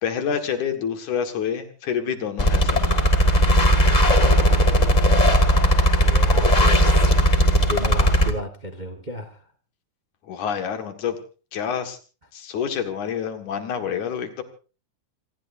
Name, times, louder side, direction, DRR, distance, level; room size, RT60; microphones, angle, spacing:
voice 1, 0.0-3.0 10.3-11.2 11.5-12.0 12.3-14.4, left 7 dB, 60° left, 7 dB, 3.1 m, -27 dB
sound 1, 2.4-8.3, equal, 35° left, 0.6 m, -17 dB
voice 2, 6.0-7.0 7.5-9.4, equal, 80° right, 7 dB, 0.4 m, -33 dB
28.0 x 19.0 x 2.7 m, 0.36 s
omnidirectional pair, 4.0 m